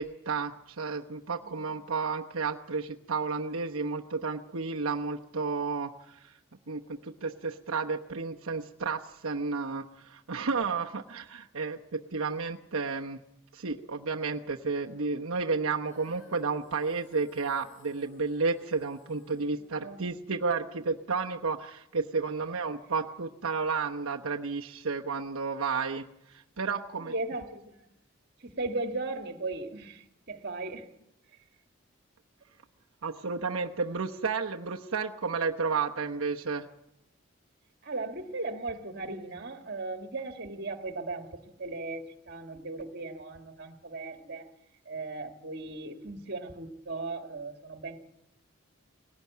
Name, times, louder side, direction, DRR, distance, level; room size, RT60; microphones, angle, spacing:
voice 1, 0.0-6.4 6.7-13.2 13.5-27.1 33.0-36.7, right 4 dB, 85° right, 1.0 m, -32 dB
Female singing, 15.8-22.1, left 2 dB, 75° left, 4.8 m, -58 dB
voice 2, 27.0-27.9 28.4-30.9 37.8-44.5 44.9-48.0, right 3 dB, 50° right, 2.0 m, -37 dB
19.5 x 17.5 x 9.4 m
head